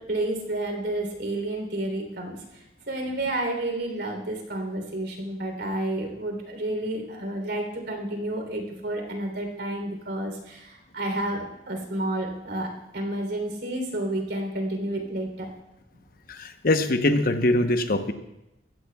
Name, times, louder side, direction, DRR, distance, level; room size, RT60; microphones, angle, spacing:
voice 1, 0.0-2.4 2.9-15.5, right 1 dB, 75° right, 3 dB, 3.5 m, -30 dB
voice 2, 16.3-18.1, left 1 dB, 55° left, 7 dB, 1.0 m, -23 dB
21.0 x 15.5 x 2.3 m, 0.90 s
head